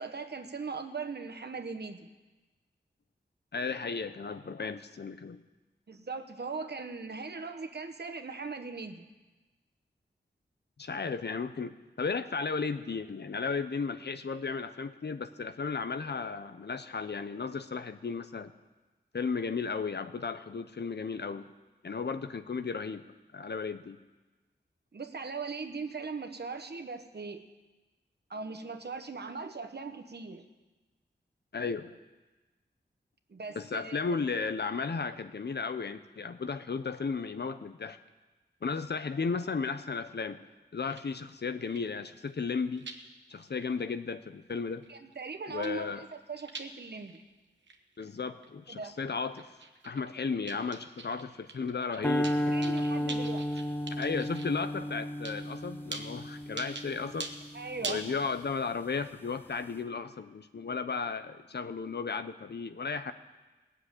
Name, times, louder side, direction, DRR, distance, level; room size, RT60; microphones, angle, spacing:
voice 1, 0.0-2.1 5.9-9.1 24.9-27.4 28.3-30.5 33.3-34.2 44.9-47.2 48.7-48.9 51.9-53.5 57.5-58.0, right 4 dB, 65° right, 7 dB, 1.2 m, -39 dB
voice 2, 3.5-5.4 10.8-18.5 19.1-21.5 21.8-23.0 23.3-24.0 31.5-31.9 33.5-38.0 38.6-40.4 40.7-42.9 43.3-44.8 45.5-46.1 48.0-49.5 49.8-52.5 54.0-57.3 57.8-63.1, left 5 dB, 65° left, 10 dB, 0.8 m, -34 dB
sound 1, 40.8-41.0 41.3-41.4 41.6-43.0 43.3-43.6 43.9-44.0 44.5-45.1 45.4-46.6 47.1-47.2 47.6-48.5 48.7-49.0 49.3-50.1 50.5-51.2 51.5-54.5 55.2-55.5 55.9-56.0 56.6-56.9 57.2-57.3 57.8-58.1, right 4 dB, 90° right, 1.2 m, -42 dB
sound 2, 52.0-58.4, equal, 10° left, 0.8 m, -33 dB
18.5 x 7.2 x 9.0 m, 1.2 s
cardioid pair, 50°, 18 cm